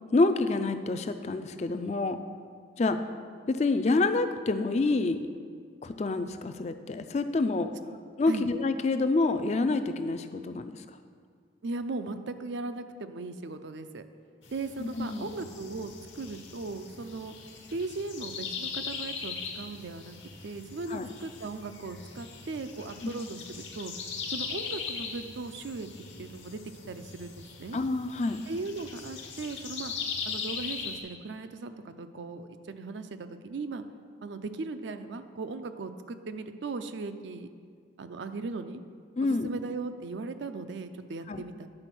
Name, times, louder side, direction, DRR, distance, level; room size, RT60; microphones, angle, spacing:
voice 1, 0.1-2.2 2.8-3.0 3.5-5.2 5.8-7.7 8.2-10.8 14.8-15.3 20.9-21.1 23.0-23.1 27.7-28.4 39.2-39.5 41.3-41.4, left 3 dB, 35° left, 9 dB, 0.4 m, -27 dB
voice 2, 11.6-14.0 14.5-17.3 17.7-20.2 20.4-23.9 24.3-25.9 26.2-26.6 26.9-27.8 28.5-29.9 30.3-33.8 34.2-37.5 38.0-38.8 39.2-41.7, right 3 dB, 65° right, 9 dB, 0.5 m, -38 dB
sound 1, 14.4-31.0, left 5 dB, 75° left, 1.2 m, -40 dB
9.8 x 4.4 x 6.0 m, 2.1 s
head